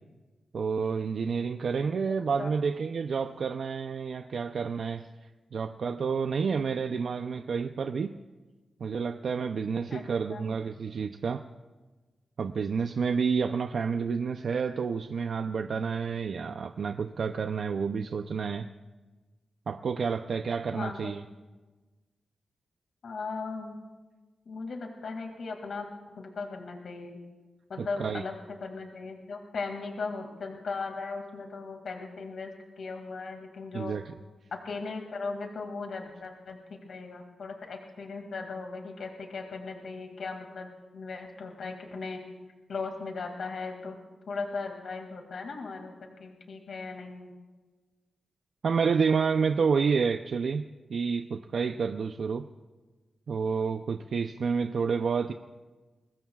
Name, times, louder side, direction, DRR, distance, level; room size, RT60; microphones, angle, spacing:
voice 1, 0.5-5.1 5.5-8.1 8.8-11.4 12.4-18.7 19.7-21.2 27.8-28.2 33.7-34.1 48.6-52.4 53.3-55.3, right 5 dB, 65° right, 7 dB, 0.5 m, -29 dB
voice 2, 2.1-2.5 9.9-10.5 20.7-21.1 23.0-23.8 24.5-25.9 26.1-27.2 27.7-28.3 28.6-32.5 32.8-34.0 34.5-42.2 42.7-44.0 44.3-47.3, left 4 dB, 70° left, 3 dB, 2.2 m, -38 dB
23.0 x 20.5 x 2.4 m, 1.2 s
wide cardioid pair, 115°, 0 cm